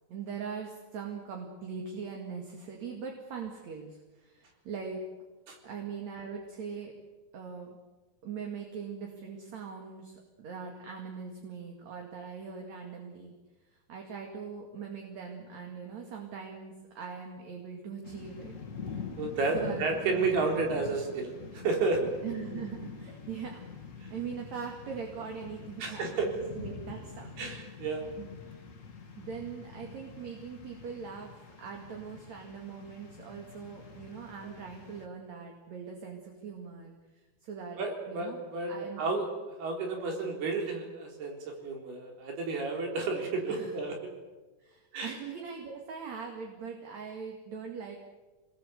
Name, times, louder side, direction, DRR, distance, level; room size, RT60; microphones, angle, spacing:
voice 1, 0.1-5.0 5.6-6.9 7.3-7.8 8.2-13.3 13.7-18.6 18.8-19.1 19.5-20.3 22.2-23.6 24.1-26.1 26.3-27.4 28.2-28.4 29.2-37.8 38.1-38.4 38.7-39.0 43.5-43.7 44.6-48.0, right 6 dB, 50° right, 1 dB, 3.2 m, -41 dB
sound 1, 18.0-35.1, left 5 dB, 40° left, 1.1 m, -45 dB
voice 2, 19.2-22.1 25.8-26.3 27.4-28.1 37.8-39.3 39.6-43.9 44.9-45.1, right 3 dB, 85° right, 1 dB, 5.8 m, -31 dB
25.5 x 21.0 x 8.1 m, 1.2 s
omnidirectional pair, 4.4 m